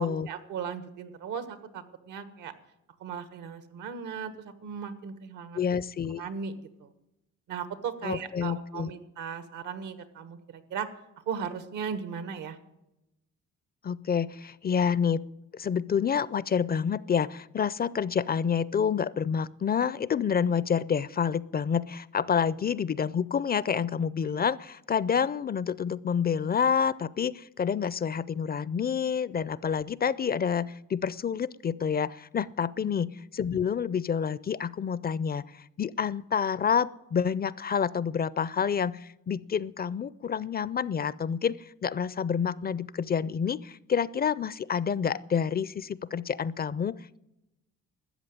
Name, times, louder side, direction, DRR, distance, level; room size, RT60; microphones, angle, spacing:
voice 1, 0.0-2.5 3.0-5.7 6.2-6.9 7.5-10.9 11.3-12.6 32.8-32.9, right 6 dB, 85° right, 11 dB, 1.5 m, -37 dB
voice 2, 5.5-6.2 8.0-8.9 13.8-15.2 15.5-47.2, left 7 dB, 30° left, 20 dB, 0.4 m, -28 dB
13.0 x 8.0 x 9.0 m, 0.90 s
cardioid pair, 90°, 30 cm